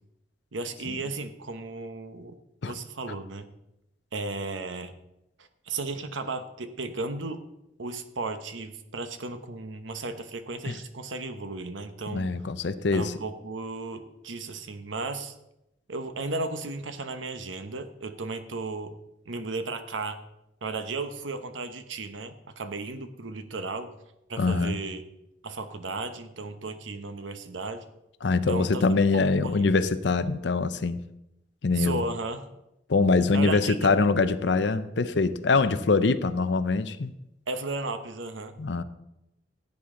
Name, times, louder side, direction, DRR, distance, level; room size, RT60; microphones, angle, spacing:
voice 1, 0.5-2.4 2.7-3.5 4.1-4.9 5.4-7.4 7.8-12.3 12.9-15.4 15.9-19.0 19.3-20.2 20.6-23.9 24.3-25.0 25.4-27.8 28.5-29.6 31.8-32.5 33.3-33.9 37.5-38.6, right 3 dB, 90° right, 9 dB, 1.0 m, -35 dB
voice 2, 12.1-13.1 24.4-24.8 28.2-31.0 31.6-32.0 32.9-37.1 38.6-38.8, left 3 dB, 70° left, 13 dB, 0.6 m, -24 dB
15.5 x 8.7 x 3.8 m, 0.87 s
head